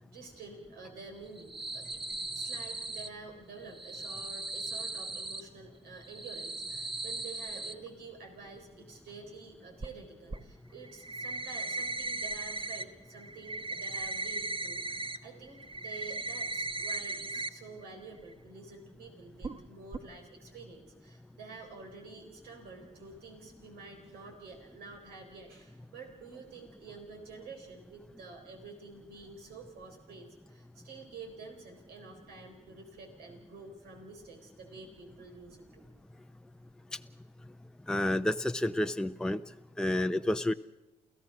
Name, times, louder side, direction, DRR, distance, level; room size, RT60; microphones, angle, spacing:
voice 1, 0.0-2.0 2.3-35.9, right 4 dB, 80° right, 2 dB, 4.1 m, -49 dB
sound 1, 1.3-3.1 3.7-5.4 6.0-7.7 9.8-9.9 10.3-10.4 10.8-12.8 13.1-15.2 15.5-17.5 17.8-17.9 18.3-18.4 19.4-19.6 19.9-20.0, right 2 dB, 30° right, 1.3 m, -37 dB
voice 2, 37.9-39.4 39.8-40.5, left 1 dB, 5° left, 8 dB, 0.6 m, -29 dB
29.0 x 15.5 x 6.1 m, 0.97 s
supercardioid pair, 55°, 16 cm